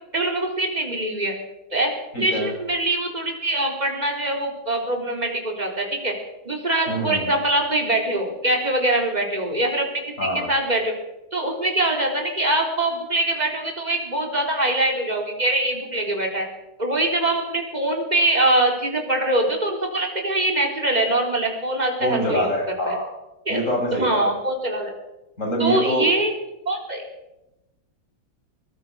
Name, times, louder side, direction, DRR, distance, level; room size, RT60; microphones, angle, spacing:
voice 1, 0.1-1.3 1.7-6.1 6.5-10.9 11.3-16.5 16.8-22.5 22.9-23.0 23.5-23.6 23.9-24.9 25.6-26.3 26.7-27.0, right 1 dB, 20° right, 2 dB, 4.2 m, -23 dB
voice 2, 2.1-2.5 6.9-7.4 10.2-10.5 22.0-23.1 23.5-24.3 25.4-26.1, right 1 dB, 35° left, 0 dB, 8.0 m, -24 dB
23.5 x 18.5 x 6.4 m, 0.94 s
omnidirectional pair, 2.3 m